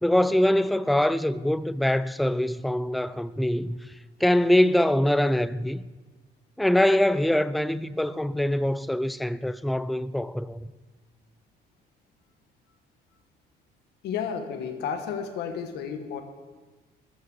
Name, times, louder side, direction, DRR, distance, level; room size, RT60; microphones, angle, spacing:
voice 1, 0.0-3.9 4.2-5.8 6.6-10.7, left 1 dB, ahead, 0.3 m, -23 dB
voice 2, 14.0-16.2, left 7 dB, 75° left, 1.4 m, -32 dB
13.0 x 6.6 x 7.0 m
cardioid pair, 110°, 17 cm